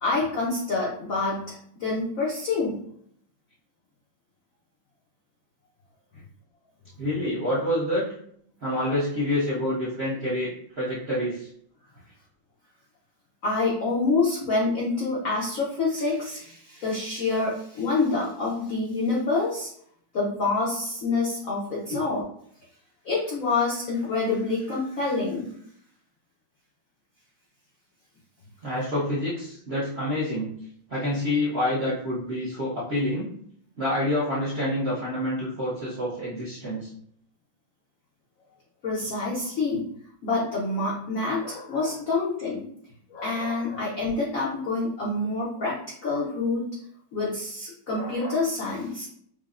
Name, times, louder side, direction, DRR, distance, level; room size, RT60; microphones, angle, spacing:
voice 1, 0.0-2.8 13.4-19.7 20.1-22.2 23.0-25.5 38.8-39.9 40.2-42.7 43.1-45.8 46.0-46.6 47.1-49.1, left 3 dB, 85° left, -4 dB, 0.7 m, -27 dB
voice 2, 7.0-8.1 8.6-11.5 21.9-22.0 28.6-30.5 30.9-33.3 33.8-36.9, left 1 dB, 60° right, -8 dB, 0.6 m, -27 dB
6.2 x 2.1 x 2.4 m, 0.67 s
omnidirectional pair, 2.3 m